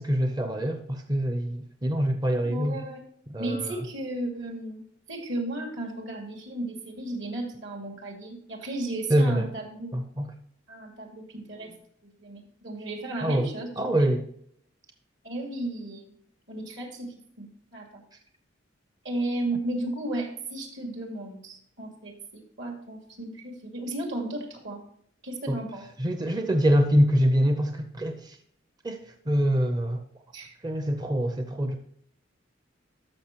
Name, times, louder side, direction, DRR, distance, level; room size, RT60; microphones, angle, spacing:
voice 1, 0.0-2.8 3.3-3.8 9.1-9.5 9.9-10.3 13.2-13.5 13.8-14.3 25.5-25.6 26.0-28.4 28.8-30.0 30.6-31.8, equal, 20° right, 6 dB, 0.6 m, -25 dB
voice 2, 2.4-3.0 3.4-4.8 5.1-10.0 10.7-11.7 12.0-13.7 14.0-14.1 15.2-16.1 16.5-17.1 17.4-18.0 19.0-24.8 25.2-25.9 30.3-30.5, right 1 dB, 70° right, 2 dB, 2.5 m, -34 dB
13.0 x 6.1 x 3.0 m, 0.66 s
head